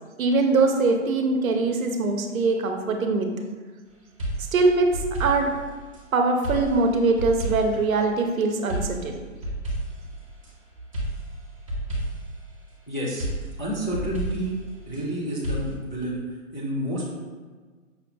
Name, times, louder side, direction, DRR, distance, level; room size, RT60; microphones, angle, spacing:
voice 1, 0.2-3.3 4.5-5.5 6.1-9.2, right 3 dB, 80° right, 4 dB, 0.7 m, -22 dB
sound 1, 4.2-6.0 6.4-7.9 8.7-10.5 10.9-12.4 13.2-15.0 15.4-15.8, right 1 dB, 25° right, 0.6 m, -31 dB
voice 2, 12.9-13.3 13.6-14.6 14.9-17.0, equal, 35° left, -6 dB, 0.4 m, -29 dB
5.5 x 2.2 x 2.5 m, 1.4 s
hypercardioid pair, 170°, 41 cm